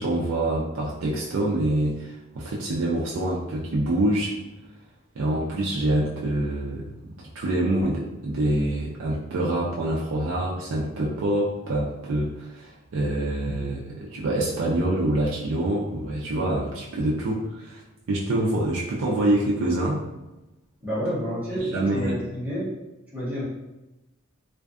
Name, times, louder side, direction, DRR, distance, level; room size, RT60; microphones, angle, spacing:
voice 1, 0.0-4.3 5.2-6.9 7.2-17.8 18.1-20.0 21.7-22.2, right 1 dB, 65° right, -4 dB, 0.4 m, -26 dB
voice 2, 20.8-22.7 23.1-23.4, equal, 10° right, -11 dB, 1.0 m, -29 dB
2.5 x 2.3 x 2.3 m, 0.99 s
head